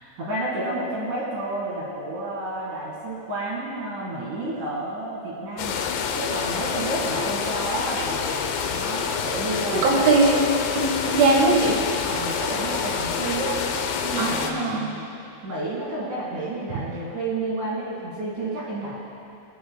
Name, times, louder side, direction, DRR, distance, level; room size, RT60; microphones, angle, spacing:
voice 1, 0.2-5.8 6.1-10.1 12.0-13.6 14.0-15.0 15.4-19.0, right 2 dB, 55° right, -6 dB, 2.8 m, -30 dB
sound 1, 5.6-14.5, left 6 dB, 80° left, 2.7 m, -27 dB
voice 2, 9.7-10.4 10.7-11.8 14.2-14.9, right 3 dB, 90° right, -1 dB, 3.8 m, -20 dB
27.5 x 9.3 x 2.2 m, 2.7 s
omnidirectional pair, 5.3 m